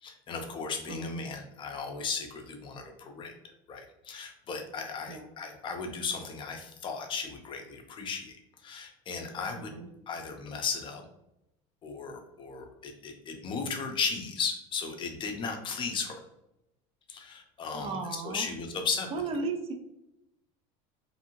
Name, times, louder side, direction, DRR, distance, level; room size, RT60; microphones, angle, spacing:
voice 1, 0.0-3.4 3.7-8.4 8.6-9.7 10.1-11.0 11.8-16.2 17.1-19.1, left 5 dB, 30° left, 4 dB, 0.5 m, -36 dB
voice 2, 0.9-1.2 5.1-5.3 9.5-9.9 17.7-18.5 19.1-19.7, right 4 dB, 40° right, 5 dB, 0.4 m, -35 dB
2.6 x 2.5 x 2.8 m, 0.85 s
cardioid pair, 135°, 16 cm